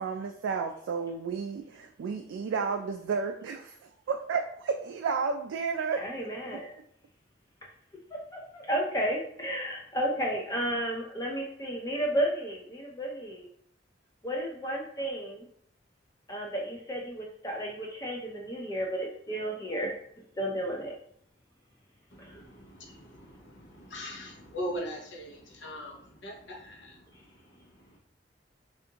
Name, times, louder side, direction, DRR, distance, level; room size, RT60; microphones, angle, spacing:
voice 1, 0.0-3.8 4.1-6.1 6.5-6.6, right 5 dB, 90° right, 3 dB, 0.3 m, -32 dB
voice 2, 6.0-6.7 8.1-13.5 14.2-15.5 16.3-19.9 20.4-21.0 22.2-22.3, right 1 dB, 20° left, 0 dB, 0.5 m, -32 dB
voice 3, 22.1-28.0, equal, 75° left, 0 dB, 0.8 m, -41 dB
3.4 x 2.5 x 2.8 m, 0.66 s
head